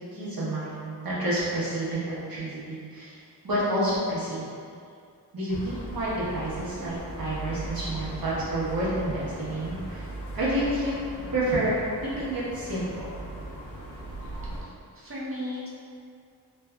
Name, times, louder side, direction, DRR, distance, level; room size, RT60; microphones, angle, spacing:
voice 1, 0.1-3.1 3.4-4.4 5.3-10.0 10.3-10.9 11.3-11.7 12.0-13.1, right 1 dB, 60° right, -9 dB, 1.2 m, -29 dB
sound 1, 5.5-14.6, right 1 dB, 80° left, 0.7 m, -38 dB
voice 2, 14.6-15.7, left 1 dB, 35° right, -6 dB, 0.7 m, -36 dB
3.3 x 3.3 x 2.3 m, 2.4 s
wide cardioid pair, 110°, 41 cm